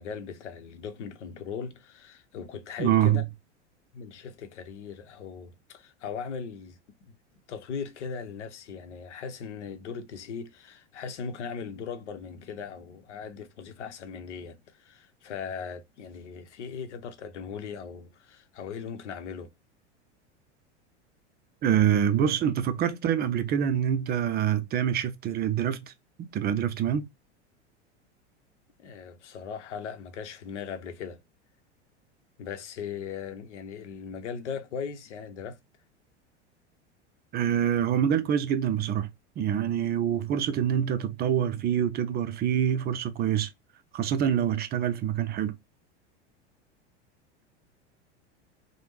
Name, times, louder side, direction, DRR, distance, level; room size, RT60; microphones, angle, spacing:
voice 1, 0.0-3.2 3.9-6.8 7.0-7.1 7.5-19.5 28.8-31.2 32.4-35.6, left 6 dB, 80° left, 0.8 m, -38 dB
voice 2, 2.8-3.2 21.6-25.9 26.2-27.1 37.3-39.1 39.4-43.5 43.9-45.6, right 9 dB, 30° right, 0.4 m, -26 dB
3.3 x 2.1 x 3.0 m
hypercardioid pair, 90°, 35 cm